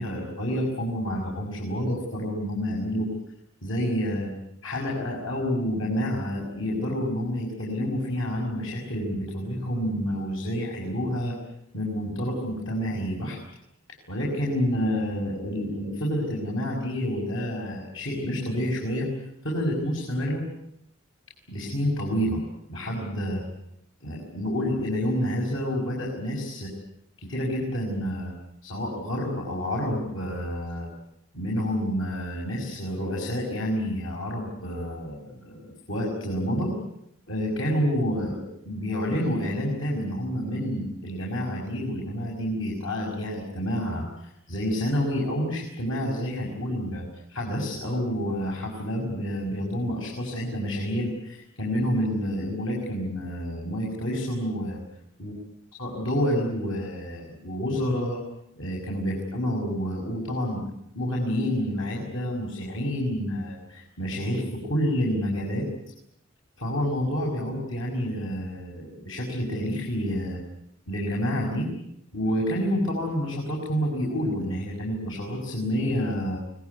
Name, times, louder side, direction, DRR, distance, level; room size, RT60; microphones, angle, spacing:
voice 1, 0.0-3.1 3.6-4.3 4.6-11.3 11.7-13.4 14.1-19.1 19.4-20.5 21.5-22.4 22.7-23.4 24.0-26.7 27.2-28.3 28.6-30.9 31.3-36.7 37.3-54.8 55.2-55.3 55.8-58.2 58.6-60.6 60.9-65.7 66.6-70.4 70.9-71.7 72.1-76.4, equal, 75° left, -2 dB, 6.0 m, -28 dB
24.5 x 20.0 x 9.6 m, 0.78 s
head